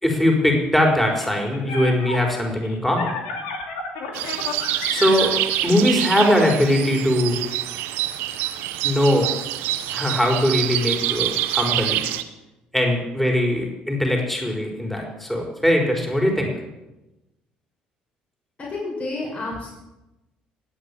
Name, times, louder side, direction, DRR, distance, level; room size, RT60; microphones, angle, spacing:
voice 1, 0.0-3.1 4.9-5.3 5.6-7.4 8.8-9.3 9.9-12.0 12.7-16.5, left 1 dB, 5° left, 1 dB, 4.4 m, -21 dB
sound 1, 1.2-6.9, left 4 dB, 80° left, 2.7 m, -33 dB
sound 2, 4.1-12.2, right 14 dB, 75° right, 1.0 m, -26 dB
voice 2, 18.6-19.7, left 2 dB, 35° left, -3 dB, 6.4 m, -30 dB
18.0 x 8.5 x 8.5 m, 0.98 s
hypercardioid pair, 60°, 4 cm